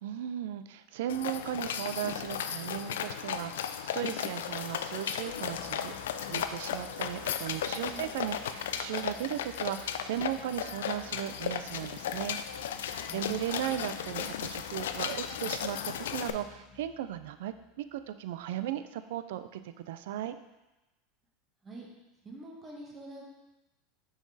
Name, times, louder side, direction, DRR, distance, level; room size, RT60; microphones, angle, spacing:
voice 1, 0.0-5.9 6.2-12.4 12.7-20.4, right 11 dB, 75° right, 11 dB, 0.4 m, -36 dB
sound 1, 1.1-16.3, left 9 dB, 85° left, 0.3 m, -35 dB
sound 2, 5.5-18.8, left 3 dB, 5° right, 1.1 m, -56 dB
voice 2, 22.2-23.2, right 1 dB, 25° right, -2 dB, 1.4 m, -45 dB
5.9 x 4.0 x 4.1 m, 1.0 s
hypercardioid pair, 105°, 0 cm